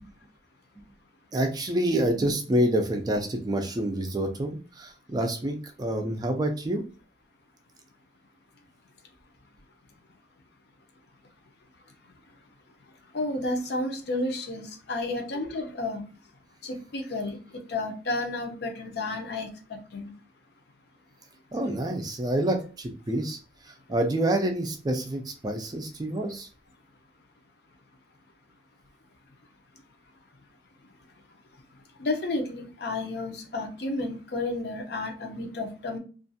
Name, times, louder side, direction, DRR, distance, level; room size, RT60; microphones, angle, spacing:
voice 1, 1.3-6.8 21.5-23.4 23.9-26.5, right 1 dB, 20° right, 0.4 m, -27 dB
voice 2, 13.1-16.0 16.6-17.4 17.7-19.5 19.9-20.1 32.0-36.0, left 2 dB, 60° left, 0.6 m, -31 dB
2.5 x 2.3 x 2.6 m
head